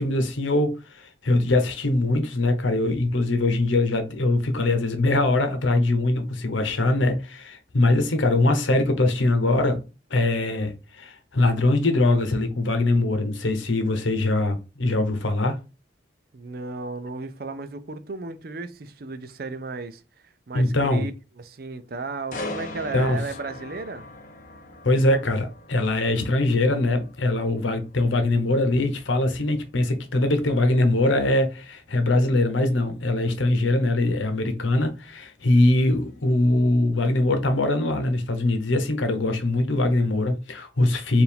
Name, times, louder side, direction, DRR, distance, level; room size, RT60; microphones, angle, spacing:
voice 1, 0.0-9.8 10.1-15.6 20.5-21.1 22.9-23.2 24.8-41.2, left 2 dB, 90° left, 0.9 m, -22 dB
voice 2, 16.3-20.0 20.5-21.1 21.4-24.1, right 3 dB, 50° right, 0.5 m, -34 dB
sound 1, 22.3-36.1 36.6-36.8, left 2 dB, 45° left, 0.9 m, -42 dB
4.6 x 2.6 x 3.5 m
head